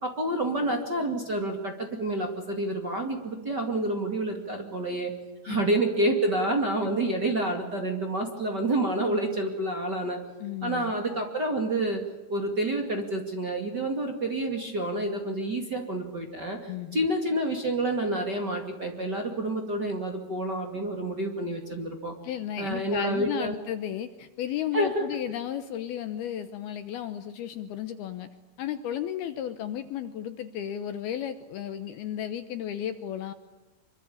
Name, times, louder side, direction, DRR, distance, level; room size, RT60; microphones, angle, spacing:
voice 1, 0.0-5.1 5.4-10.2 10.6-12.0 12.3-22.1 22.6-23.5 24.7-25.2, right 1 dB, 40° right, 3 dB, 1.6 m, -28 dB
voice 2, 10.4-10.9 16.7-17.1 22.2-28.3 28.6-33.3, left 10 dB, 80° left, 9 dB, 2.2 m, -34 dB
25.5 x 24.0 x 8.7 m, 1.1 s
omnidirectional pair, 5.7 m